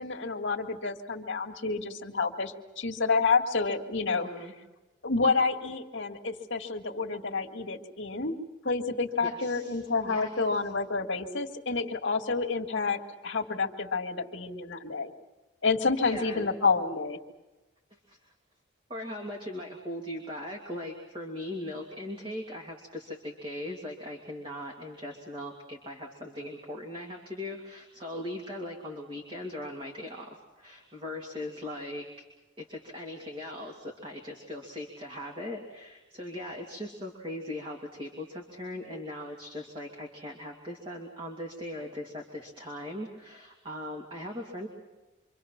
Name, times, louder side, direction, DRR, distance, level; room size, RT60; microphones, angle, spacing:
voice 1, 0.0-4.3 5.0-8.4 8.6-15.1 15.6-17.2, left 4 dB, 70° left, 0 dB, 1.9 m, -29 dB
voice 2, 4.1-4.5 9.2-10.4 16.0-16.5 17.9-18.3 18.9-32.1 32.6-44.7, left 1 dB, 25° right, 0 dB, 2.7 m, -39 dB
27.5 x 25.0 x 5.9 m, 1.1 s
head